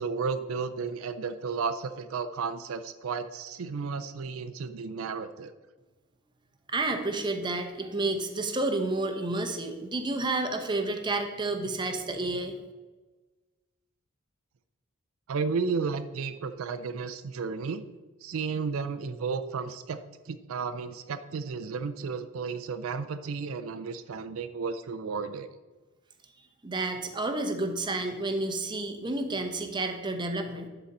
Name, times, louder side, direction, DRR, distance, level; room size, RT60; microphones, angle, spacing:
voice 1, 0.0-5.5 15.3-17.8 18.2-25.5, right 5 dB, 75° right, 10 dB, 0.4 m, -33 dB
voice 2, 6.7-12.5 26.6-30.7, right 2 dB, 20° right, 5 dB, 0.7 m, -30 dB
11.5 x 3.9 x 4.2 m, 1.3 s
head